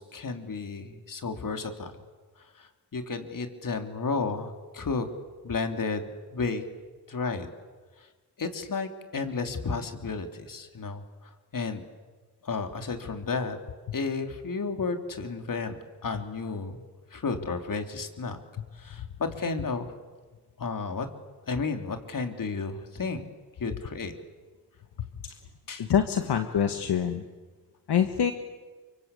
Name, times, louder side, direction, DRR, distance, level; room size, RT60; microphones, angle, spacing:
voice 1, 0.0-1.9 2.4-5.1 5.4-6.6 7.1-7.5 8.0-8.1 8.4-11.8 12.4-13.6 13.9-15.8 16.0-16.8 17.1-18.4 18.7-19.9 20.6-21.1 21.4-23.2 23.6-24.1 25.7-25.9, left 4 dB, 55° left, 6 dB, 3.3 m, -32 dB
voice 2, 25.8-27.2 27.9-28.3, left 8 dB, 75° left, 7 dB, 1.7 m, -25 dB
29.0 x 24.5 x 8.4 m, 1.4 s
cardioid pair, 75°, 40 cm